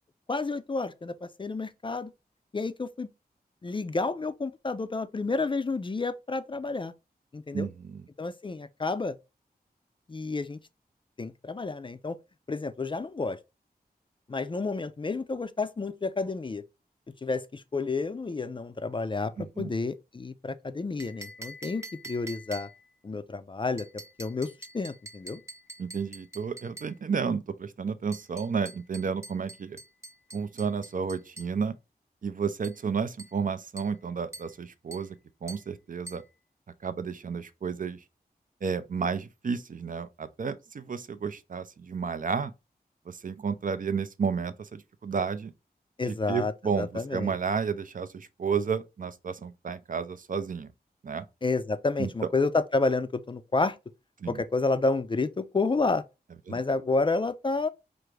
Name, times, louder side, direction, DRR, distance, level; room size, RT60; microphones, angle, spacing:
voice 1, 0.3-2.1 2.5-3.1 3.6-6.9 7.3-7.7 8.2-9.2 10.1-10.6 11.2-12.2 12.5-13.4 14.3-16.6 17.2-22.7 23.0-23.9 24.2-24.5 24.7-25.4 46.0-47.3 51.4-53.8 54.3-56.0 56.5-57.7, left 3 dB, 30° left, 0.4 m, -30 dB
voice 2, 7.5-8.0 19.4-19.7 25.8-29.8 30.3-31.7 32.2-35.1 35.4-36.2 36.8-38.0 38.6-42.5 43.1-45.5 46.1-50.7 51.0-51.3 52.0-52.1 54.2-54.4 56.5-56.6, right 6 dB, 55° right, 0.4 m, -32 dB
sound 1, 21.0-23.0 23.8-27.0 28.1-31.6 32.6-32.9 33.2-33.4 33.8-34.0 34.3-34.6 34.9-35.1 35.5-35.7 36.1-36.3, right 1 dB, 15° right, 0.7 m, -46 dB
4.6 x 2.5 x 3.1 m
wide cardioid pair, 85°, 17 cm